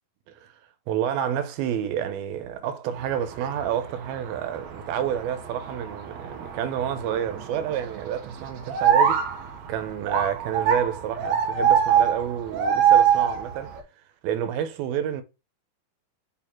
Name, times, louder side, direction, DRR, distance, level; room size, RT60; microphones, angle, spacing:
voice 1, 0.9-9.2 9.7-13.8 14.2-15.2, right 9 dB, 85° right, 2.7 m, -29 dB
sound 1, 3.0-13.8, right 8 dB, 70° right, 1.7 m, -25 dB
5.7 x 4.1 x 4.4 m
omnidirectional pair, 4.3 m